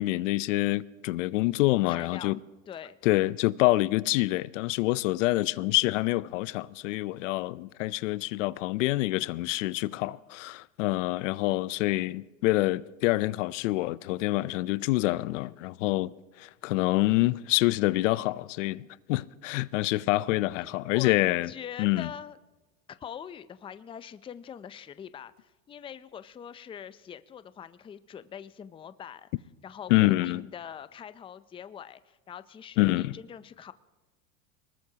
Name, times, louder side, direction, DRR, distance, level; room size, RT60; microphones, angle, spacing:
voice 1, 0.0-2.4 3.0-21.5 21.8-22.1 29.9-30.5 32.8-33.2, left 18 dB, 75° left, 0.6 m, -26 dB
voice 2, 1.9-2.4 2.7-3.0 20.6-20.7 20.9-21.2 21.5-22.4 22.9-29.3 29.6-33.7, left 8 dB, 15° left, 0.5 m, -43 dB
23.5 x 20.0 x 2.9 m
hypercardioid pair, 105°, 38 cm